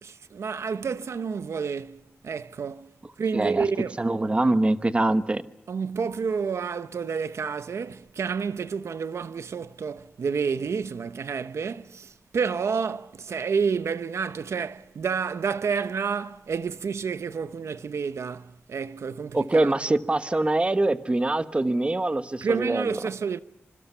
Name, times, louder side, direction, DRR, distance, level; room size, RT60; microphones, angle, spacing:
voice 1, 0.0-2.9 3.2-4.0 5.7-19.7 22.4-23.4, right 6 dB, 85° right, 0.9 m, -29 dB
voice 2, 3.3-3.7 4.0-5.4 19.3-23.0, right 2 dB, 25° right, 1.1 m, -24 dB
26.5 x 25.0 x 5.6 m
wide cardioid pair, 120°, 5 cm